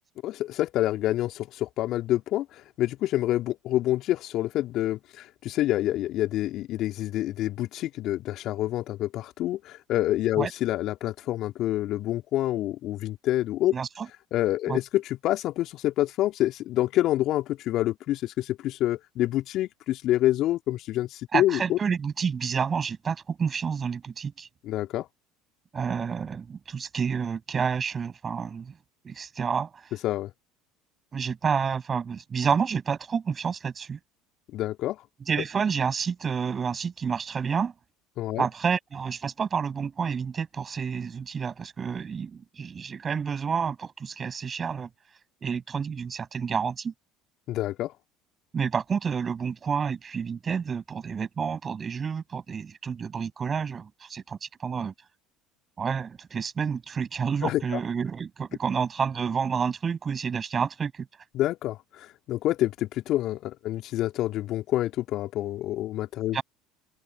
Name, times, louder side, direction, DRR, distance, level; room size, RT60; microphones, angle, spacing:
voice 1, 0.2-13.7 14.3-21.8 24.6-25.1 30.0-30.3 34.5-35.0 38.2-38.5 47.5-47.9 57.4-57.8 61.3-66.4, left 14 dB, 55° left, 2.8 m, -27 dB
voice 2, 13.7-14.1 14.7-14.8 21.3-24.5 25.7-28.7 29.0-29.8 31.1-34.0 35.3-37.7 38.4-44.9 45.4-46.9 48.5-54.9 55.8-61.1 66.3-66.4, right 6 dB, 35° right, 8.0 m, -29 dB
open air
hypercardioid pair, 65°, 0 cm